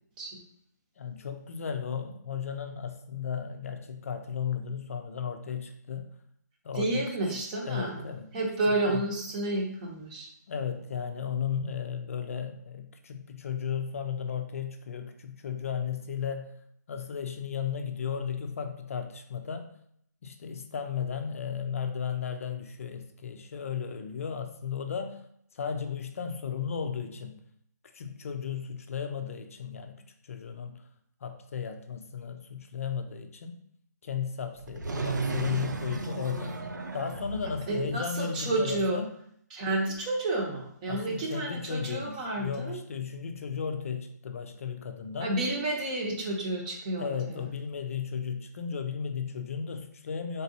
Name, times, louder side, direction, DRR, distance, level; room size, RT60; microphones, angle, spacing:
voice 1, 1.0-6.1 6.6-7.0 7.6-8.4 8.9-9.0 10.5-16.5 16.9-19.7 20.2-25.2 25.5-27.4 27.9-30.9 31.2-33.6 34.0-36.6 36.9-39.2 40.9-45.4 47.0-50.4, left 7 dB, 50° left, 6 dB, 0.5 m, -35 dB
voice 2, 6.8-8.0 8.3-10.3 37.7-39.0 39.5-42.8 45.2-47.1, right 2 dB, 25° right, 0 dB, 0.8 m, -30 dB
sound 1, 34.5-37.7 40.0-40.1, right 3 dB, 80° right, 0.6 m, -34 dB
4.0 x 3.7 x 2.7 m, 0.67 s
hypercardioid pair, 160°, 10 cm